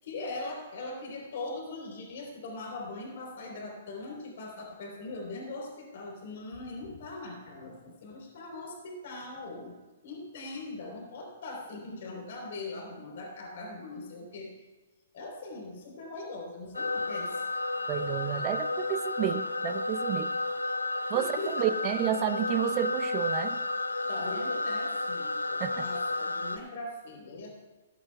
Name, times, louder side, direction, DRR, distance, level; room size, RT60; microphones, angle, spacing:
voice 1, 0.0-9.7 10.0-14.5 15.1-17.4 21.1-21.7 24.1-27.5, left 2 dB, 60° left, 0 dB, 3.7 m, -40 dB
sound 1, 16.7-26.6, left 2 dB, 90° left, 0.5 m, -32 dB
voice 2, 17.9-20.3 21.1-23.6 25.6-25.9, right 10 dB, 35° right, 11 dB, 0.6 m, -30 dB
18.0 x 12.0 x 2.3 m, 1.2 s
figure-of-eight pair, 120°, 0 cm